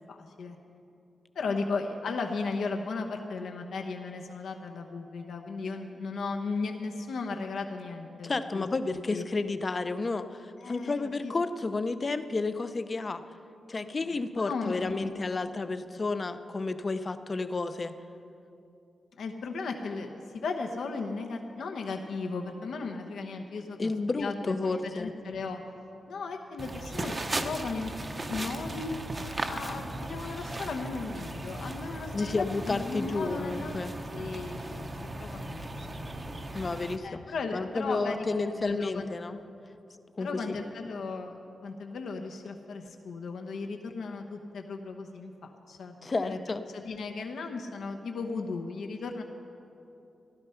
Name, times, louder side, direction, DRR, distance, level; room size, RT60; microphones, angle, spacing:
voice 1, 0.1-0.6 1.3-9.2 10.6-11.0 11.2-11.3 14.0-15.4 19.2-25.6 26.1-27.1 27.4-27.9 28.2-29.0 29.5-33.8 34.1-34.9 35.2-35.6 37.0-39.1 40.2-41.3 41.6-45.9 46.2-49.2, left 4 dB, 80° left, 3 dB, 0.9 m, -36 dB
voice 2, 8.2-13.2 13.7-17.9 23.8-25.1 32.1-33.9 36.5-37.2 37.5-39.4 40.2-40.6 46.0-46.6, left 3 dB, 30° left, 11 dB, 0.6 m, -31 dB
sound 1, 26.6-37.0, right 1 dB, 25° right, 0.7 m, -37 dB
14.5 x 12.5 x 5.7 m, 2.8 s
wide cardioid pair, 130°, 0 cm